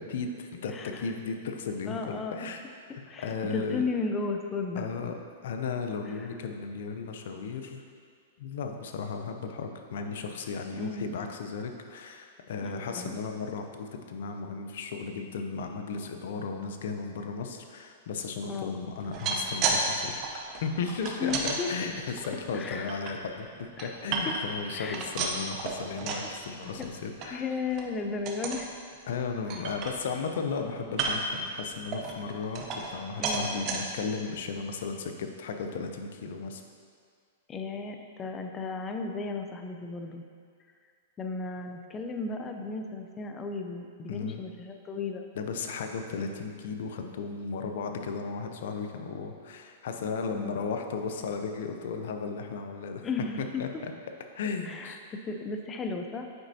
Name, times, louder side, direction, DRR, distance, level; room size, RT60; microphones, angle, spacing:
voice 1, 0.1-2.6 3.2-3.8 4.8-5.2 5.4-7.8 8.4-27.4 29.1-36.6 44.1-44.4 45.4-53.0 53.6-53.9 54.4-55.0, left 5 dB, 70° left, 5 dB, 0.6 m, -35 dB
voice 2, 0.7-1.1 1.9-2.5 3.1-4.9 6.1-6.3 10.7-11.2 12.5-13.2 18.5-18.8 21.2-21.7 22.2-22.9 23.8-24.0 24.3-24.4 24.7-25.0 26.8-26.9 27.3-28.7 29.5-29.6 33.2-33.7 37.5-40.2 41.2-45.2 50.3-50.6 53.0-53.6 54.6-56.2, left 4 dB, 20° left, 5 dB, 0.5 m, -35 dB
sound 1, 19.0-19.8 20.1-21.6 22.1-23.1 23.6-24.6 24.9-26.3 26.6-26.9 27.2-27.3 27.7-27.9 28.3-28.7 29.1-29.2 29.5-30.3 30.9-31.4 31.9-33.0 33.2-33.8 34.4-34.5 34.8-34.9, right 4 dB, 40° right, 0.8 m, -32 dB
7.8 x 5.0 x 2.8 m, 2.1 s
hypercardioid pair, 130°, 0 cm